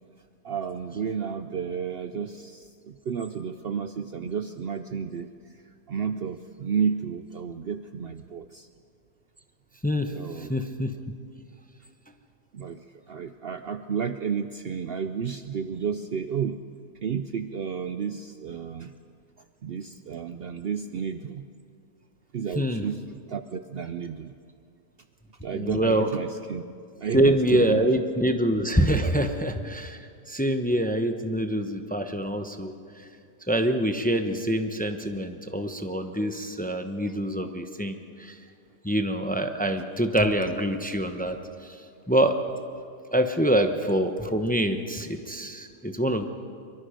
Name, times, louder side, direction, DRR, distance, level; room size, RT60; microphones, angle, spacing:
voice 1, 0.4-5.3 5.9-8.7 10.1-10.5 12.5-12.8 13.1-16.6 17.0-18.9 19.6-21.4 22.3-23.0 23.3-24.3 25.4-26.6 27.0-27.8, right 7 dB, 90° right, 9 dB, 0.5 m, -31 dB
voice 2, 10.4-10.9 22.6-22.9 25.5-26.1 27.1-30.0 30.3-32.7 33.5-38.3 38.8-41.4 42.1-42.3 43.1-46.2, right 1 dB, 10° left, 6 dB, 0.6 m, -25 dB
23.5 x 23.5 x 5.1 m, 2.3 s
omnidirectional pair, 1.8 m